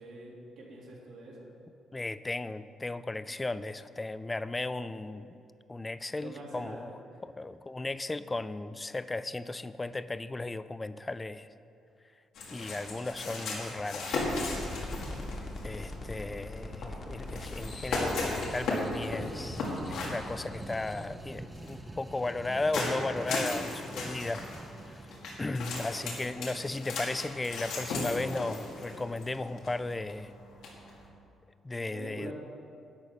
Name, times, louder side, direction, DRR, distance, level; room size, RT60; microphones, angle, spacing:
voice 1, 0.0-1.5 6.2-7.2 26.0-26.5 31.9-32.3, right 1 dB, 75° right, -4 dB, 2.3 m, -46 dB
voice 2, 1.9-5.3 5.7-6.9 7.2-11.5 12.5-14.2 15.6-24.4 24.9-25.0 25.4-30.3 31.6-32.3, left 2 dB, 20° left, 14 dB, 0.3 m, -35 dB
sound 1, 12.3-31.1, left 2 dB, 85° left, 1.8 m, -37 dB
sound 2, 14.1-22.2, left 2 dB, 50° left, 1.2 m, -42 dB
sound 3, 19.0-26.3, right 2 dB, 15° right, 0.6 m, -46 dB
11.5 x 4.2 x 8.0 m, 2.6 s
cardioid pair, 90°, 0 cm